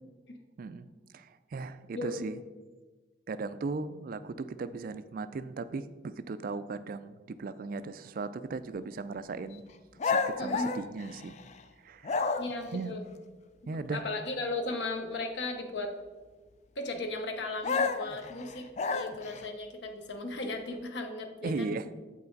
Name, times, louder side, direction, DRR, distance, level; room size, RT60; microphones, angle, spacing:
voice 1, 0.6-0.9 1.1-2.4 3.3-9.6 10.0-11.4 11.8-12.3 12.7-12.9 13.7-14.0 21.4-21.9, right 3 dB, 45° right, 13 dB, 0.3 m, -37 dB
voice 2, 1.9-2.3 10.4-10.7 12.4-13.1 13.9-15.9 16.8-21.7, left 2 dB, 60° left, 5 dB, 0.9 m, -36 dB
sound 1, 10.0-11.6 12.0-12.7 17.6-19.4, left 4 dB, 35° left, 0.3 m, -31 dB
7.9 x 5.6 x 3.9 m, 1.3 s
head